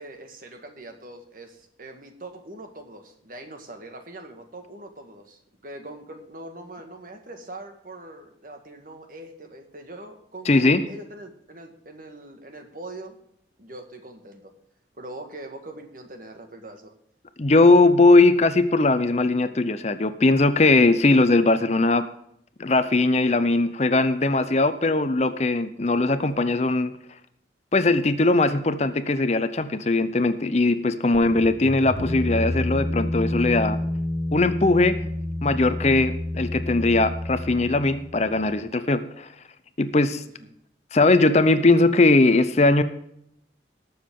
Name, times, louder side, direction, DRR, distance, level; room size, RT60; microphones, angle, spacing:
voice 1, 0.0-13.2 13.6-14.5 15.0-16.9 31.2-31.4 40.4-40.5, right 2 dB, 50° right, 5 dB, 1.8 m, -42 dB
voice 2, 10.5-10.8 17.4-22.1 22.6-26.9 27.7-33.8 34.3-35.0 35.4-39.3 39.8-40.2 40.9-42.8, left 2 dB, 35° left, 11 dB, 0.7 m, -20 dB
sound 1, 31.1-38.6, left 1 dB, 75° left, 1.5 m, -29 dB
19.5 x 7.1 x 3.7 m, 0.72 s
head